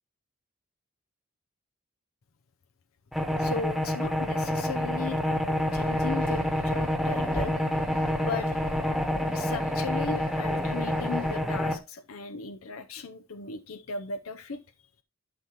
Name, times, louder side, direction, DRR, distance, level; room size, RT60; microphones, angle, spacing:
sound 1, 3.1-11.8, left 1 dB, ahead, 1.0 m, -28 dB
voice 1, 3.4-7.6 8.2-8.6 9.3-14.6, left 4 dB, 85° left, 9 dB, 0.7 m, -37 dB
sound 2, 5.3-11.4, left 1 dB, 45° left, 1.1 m, -43 dB
12.0 x 5.8 x 3.0 m, 0.27 s
head